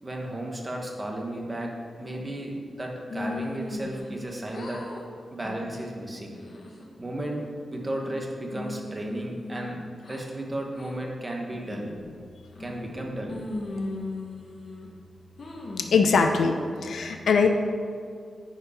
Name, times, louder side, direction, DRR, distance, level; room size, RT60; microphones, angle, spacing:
voice 1, 0.0-1.7 2.0-4.8 5.3-6.3 7.0-7.4 7.7-9.8 10.1-11.9 12.6-13.4, right 1 dB, 20° right, 0 dB, 1.2 m, -34 dB
sound 1, 3.1-4.2 4.5-5.0 5.4-5.8 6.3-6.9 7.4-8.1 8.5-10.2 10.8-10.9 11.5-11.9 12.5-13.0 13.3-14.9 15.4-16.0, left 2 dB, 50° left, 1.2 m, -37 dB
voice 2, 15.9-16.6 16.8-17.6, left 5 dB, 85° left, 5 dB, 0.6 m, -21 dB
9.7 x 5.1 x 5.0 m, 2.1 s
wide cardioid pair, 145°, 0 cm